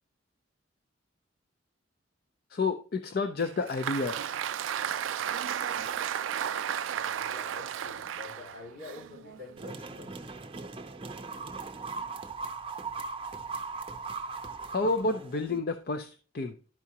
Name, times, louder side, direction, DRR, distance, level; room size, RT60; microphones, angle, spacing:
voice 1, 2.5-4.2 14.7-16.6, left 3 dB, 50° left, 8 dB, 0.5 m, -30 dB
Applause, 3.4-9.7, right 9 dB, 75° right, 0.3 m, -34 dB
voice 2, 6.9-10.2, left 3 dB, 70° left, -4 dB, 4.2 m, -47 dB
sound 1, 9.6-15.6, right 4 dB, 30° right, 0.6 m, -39 dB
12.0 x 4.8 x 2.8 m, 0.37 s
head